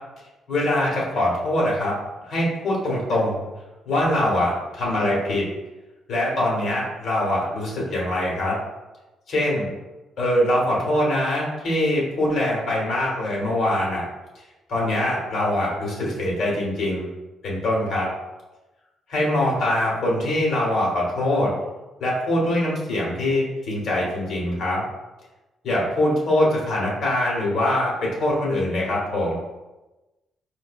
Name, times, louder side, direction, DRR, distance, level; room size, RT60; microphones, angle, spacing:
voice 1, 0.5-1.9 2.2-3.5 3.8-5.5 6.1-8.6 9.3-9.7 10.2-14.0 14.7-17.1 17.4-18.1 19.1-21.5 22.0-24.8 25.6-29.3, left 1 dB, 70° left, -4 dB, 1.2 m, -23 dB
4.5 x 2.5 x 2.4 m, 1.1 s
cardioid pair, 90°, 0 cm